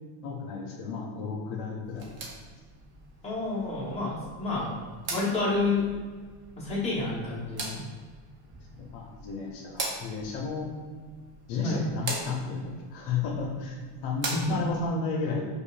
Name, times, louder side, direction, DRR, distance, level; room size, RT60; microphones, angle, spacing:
voice 1, 0.2-2.0 8.8-10.7 11.5-15.5, left 4 dB, 70° left, 0 dB, 0.7 m, -33 dB
sound 1, 1.8-14.9, right 2 dB, 25° right, 0.5 m, -41 dB
voice 2, 3.2-4.7 5.1-5.8 6.6-7.8 11.6-11.8 14.3-14.6, left 3 dB, 15° left, -8 dB, 1.0 m, -29 dB
5.0 x 2.3 x 2.5 m, 1.5 s
cardioid pair, 140°, 50 cm